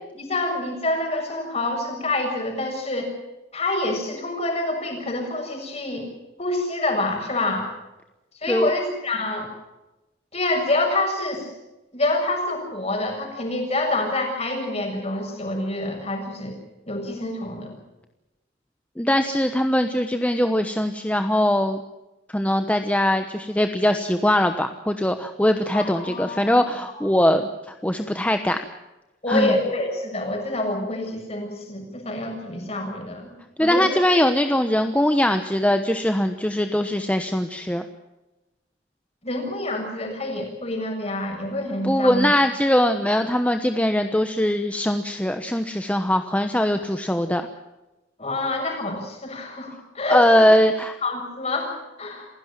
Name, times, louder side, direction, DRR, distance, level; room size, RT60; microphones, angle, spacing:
voice 1, 0.1-3.1 3.5-6.1 6.4-7.7 8.4-9.5 10.3-11.5 11.9-16.6 16.9-17.8 25.7-26.7 29.2-33.3 33.6-34.0 39.2-42.4 48.2-50.4 51.0-51.7 52.0-52.3, left 2 dB, 35° left, 2 dB, 7.0 m, -27 dB
voice 2, 19.0-21.8 22.3-27.5 27.8-28.6 29.3-29.5 33.6-37.9 41.8-47.4 50.1-51.0, left 1 dB, 10° left, 7 dB, 1.0 m, -21 dB
27.5 x 17.0 x 7.5 m, 1.0 s
head